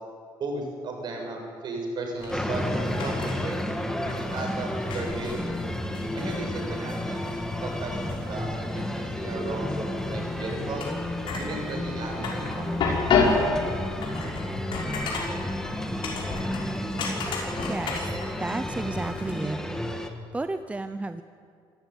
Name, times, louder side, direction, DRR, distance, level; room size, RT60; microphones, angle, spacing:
voice 1, 0.4-3.6 4.0-5.5 6.1-10.9 11.4-13.1, right 2 dB, 55° right, 2 dB, 6.9 m, -35 dB
sound 1, 2.2-19.3, left 4 dB, 65° left, 6.1 m, -32 dB
sound 2, 2.3-20.1, left 1 dB, 5° left, 2.1 m, -32 dB
voice 2, 17.7-18.0 18.4-19.6 20.3-21.2, right 2 dB, 15° right, 10 dB, 0.8 m, -32 dB
26.5 x 14.5 x 9.7 m, 2.4 s
cardioid pair, 120°, 9 cm